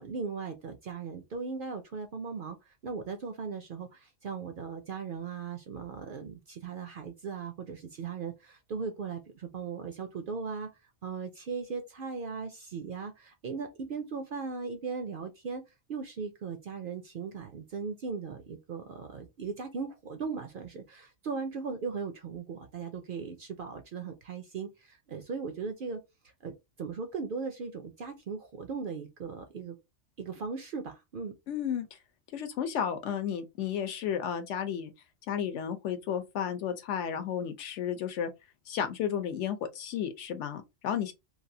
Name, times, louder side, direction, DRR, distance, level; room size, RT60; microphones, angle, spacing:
voice 1, 0.0-10.7 11.0-15.6 15.9-26.0 26.4-26.5 26.8-29.8 30.2-31.3, right 5 dB, 60° right, 0.6 m, -38 dB
voice 2, 31.5-32.0 32.3-34.9 35.3-38.3 38.7-41.1, left 8 dB, 75° left, 1.0 m, -33 dB
3.2 x 2.4 x 2.7 m
omnidirectional pair, 1.3 m